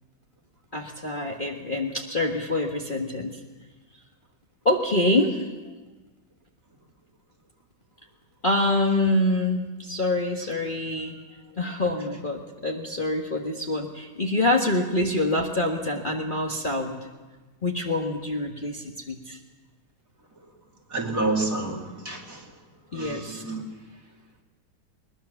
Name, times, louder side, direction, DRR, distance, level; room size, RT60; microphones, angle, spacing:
voice 1, 0.7-3.4 4.7-5.4 8.4-11.2 11.6-17.0 17.6-19.4 22.9-23.4, left 1 dB, 25° left, 0 dB, 1.7 m, -26 dB
voice 2, 20.9-22.4 22.9-23.6, right 2 dB, 40° right, 0 dB, 3.1 m, -29 dB
21.5 x 21.0 x 7.1 m, 1.2 s
omnidirectional pair, 2.2 m